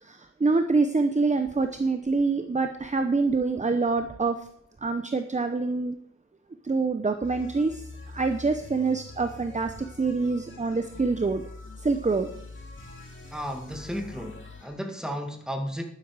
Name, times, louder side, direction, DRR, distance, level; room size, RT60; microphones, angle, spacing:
voice 1, 0.0-4.4 4.8-6.0 6.6-7.8 8.1-11.4 11.8-12.3, right 3 dB, 25° right, 7 dB, 0.7 m, -26 dB
sound 1, 7.2-14.8, left 3 dB, 40° left, 2.3 m, -44 dB
voice 2, 13.3-15.8, equal, ahead, 4 dB, 1.8 m, -34 dB
11.0 x 9.6 x 4.8 m, 0.68 s
wide cardioid pair, 90°, 29 cm